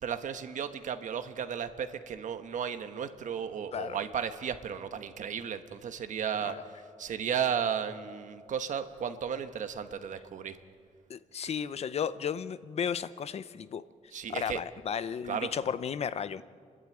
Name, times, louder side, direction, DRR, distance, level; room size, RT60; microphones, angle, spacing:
voice 1, 0.0-6.6 7.0-10.6 14.1-14.6 15.3-15.5, right 8 dB, 70° right, 9 dB, 1.2 m, -34 dB
voice 2, 11.1-13.8 14.3-16.4, left 7 dB, 50° left, 15 dB, 0.6 m, -34 dB
30.0 x 11.5 x 8.9 m, 2.2 s
wide cardioid pair, 150°, 14 cm